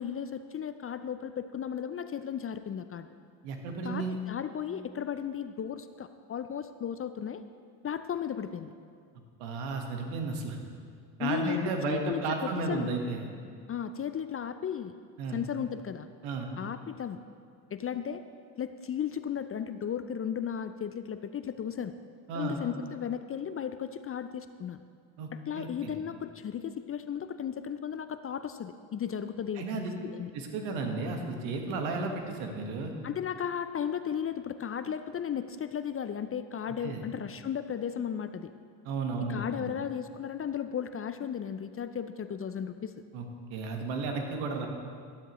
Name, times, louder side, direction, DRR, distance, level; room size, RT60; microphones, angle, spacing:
voice 1, 0.0-3.1 3.8-7.4 7.8-8.7 11.2-12.9 13.7-14.9 15.3-16.1 16.6-17.2 17.7-18.2 18.6-22.0 22.3-24.8 25.3-29.6 30.0-30.3 33.0-38.5 39.3-42.9, left 8 dB, 30° left, 10 dB, 0.5 m, -35 dB
voice 2, 3.4-4.2 9.4-10.6 11.2-13.3 15.2-15.4 16.2-16.5 22.3-22.6 25.2-25.9 29.6-29.9 30.3-32.9 36.8-37.0 38.8-39.7 43.1-43.2 43.5-44.7, right 3 dB, 75° right, 3 dB, 1.6 m, -33 dB
12.5 x 12.5 x 3.1 m, 2.1 s
hypercardioid pair, 65°, 48 cm